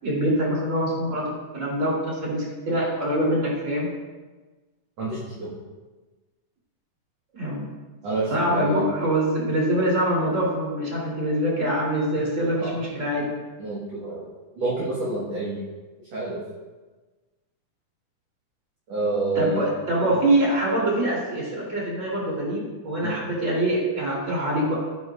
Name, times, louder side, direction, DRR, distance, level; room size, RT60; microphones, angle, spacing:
voice 1, 0.0-3.9 7.3-7.7 8.3-13.3 19.3-24.7, right 1 dB, 20° right, -5 dB, 3.3 m, -24 dB
voice 2, 5.0-5.5 8.0-8.9 12.6-12.8 13.6-14.3 14.6-15.6 16.1-16.4 18.9-19.7 23.0-23.2, right 2 dB, 55° right, -7 dB, 2.4 m, -28 dB
13.5 x 9.5 x 2.5 m, 1.3 s
omnidirectional pair, 4.2 m